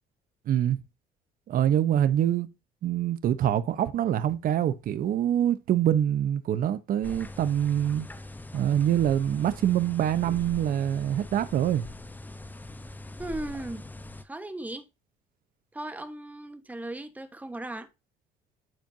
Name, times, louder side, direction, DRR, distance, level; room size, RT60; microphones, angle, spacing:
voice 1, 0.5-0.8 1.5-2.5 2.8-8.1 8.5-11.8, right 10 dB, 55° right, 0.8 m, -25 dB
sound 1, 7.0-14.2, left 2 dB, 10° left, 0.7 m, -42 dB
voice 2, 13.2-13.9 14.2-14.8 15.7-17.9, right 1 dB, 10° right, 1.2 m, -37 dB
12.0 x 4.5 x 2.7 m
cardioid pair, 110°, 17 cm